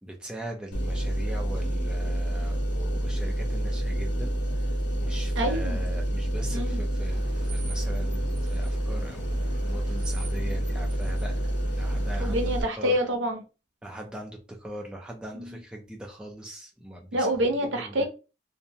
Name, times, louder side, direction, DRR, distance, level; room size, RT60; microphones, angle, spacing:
voice 1, 0.0-4.3 5.0-12.4 12.8-13.1 13.8-17.3 17.8-18.1, right 1 dB, 5° right, 0.4 m, -40 dB
sound 1, 0.7-12.6, right 1 dB, 70° left, 0.5 m, -28 dB
voice 2, 5.4-5.8 6.5-6.8 12.2-13.4 15.3-15.6 17.1-18.1, right 1 dB, 80° right, 0.6 m, -27 dB
sound 2, 7.1-12.2, right 4 dB, 35° right, 0.7 m, -49 dB
2.5 x 2.1 x 2.7 m
head